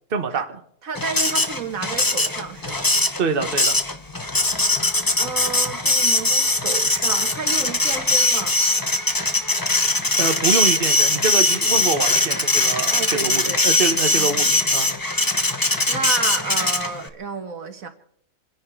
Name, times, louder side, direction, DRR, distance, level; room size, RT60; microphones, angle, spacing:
voice 1, 0.1-0.5 3.2-3.8 10.2-14.9, right 5 dB, 40° right, 6 dB, 1.4 m, -25 dB
voice 2, 0.8-2.9 5.2-8.5 12.9-13.6 14.1-14.5 15.6-17.9, right 5 dB, 75° right, 7 dB, 1.9 m, -31 dB
Printer, 1.0-17.1, left 2 dB, 15° left, 1.0 m, -21 dB
28.0 x 10.5 x 4.6 m, 0.64 s
omnidirectional pair, 1.5 m